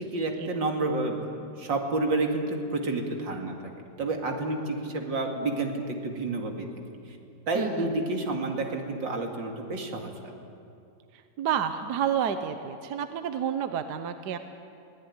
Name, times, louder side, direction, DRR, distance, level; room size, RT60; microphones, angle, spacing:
voice 1, 0.0-3.5 4.0-6.7 7.1-7.2 7.5-10.1, right 2 dB, 90° right, 2 dB, 3.0 m, -29 dB
voice 2, 7.5-7.9 11.1-14.4, right 8 dB, 70° right, 9 dB, 1.4 m, -30 dB
22.0 x 17.0 x 9.8 m, 2.5 s
omnidirectional pair, 1.9 m